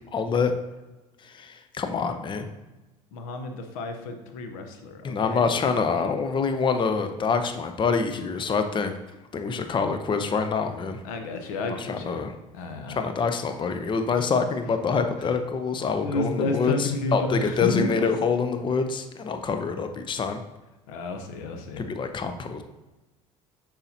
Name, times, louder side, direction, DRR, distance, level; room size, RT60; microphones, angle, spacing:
voice 1, 0.1-0.5 1.2-2.5 5.0-9.0 9.3-11.0 11.7-12.3 12.9-20.4 21.8-22.6, left 5 dB, 30° left, 7 dB, 0.6 m, -26 dB
voice 2, 3.1-5.4 11.0-12.2 12.5-13.0 16.0-17.9 20.9-21.8, left 3 dB, 85° left, 5 dB, 0.9 m, -31 dB
6.9 x 5.6 x 2.8 m, 1.1 s
supercardioid pair, 85°, 17 cm